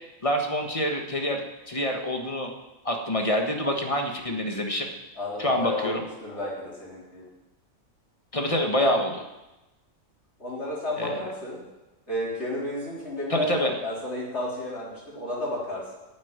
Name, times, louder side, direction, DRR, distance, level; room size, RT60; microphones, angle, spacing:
voice 1, 0.2-1.4 1.7-2.5 2.8-4.9 5.4-6.0 8.3-9.2 11.0-11.2 13.3-13.7, equal, 25° left, 3 dB, 1.5 m, -26 dB
voice 2, 5.2-7.3 10.4-11.6 12.1-15.9, left 1 dB, 50° left, -6 dB, 3.8 m, -32 dB
10.5 x 7.2 x 9.5 m, 1.0 s
omnidirectional pair, 1.4 m